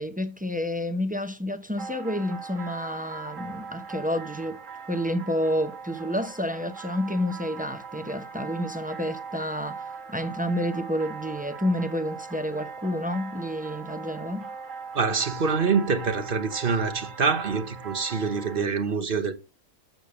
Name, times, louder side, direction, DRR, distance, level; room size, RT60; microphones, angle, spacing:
voice 1, 0.0-4.6 4.9-14.5, equal, 10° right, 0.6 m, -29 dB
sound 1, 1.8-18.6, right 5 dB, 65° right, 1.7 m, -40 dB
voice 2, 14.9-19.3, right 5 dB, 45° right, 1.1 m, -25 dB
7.9 x 6.8 x 6.7 m
omnidirectional pair, 1.5 m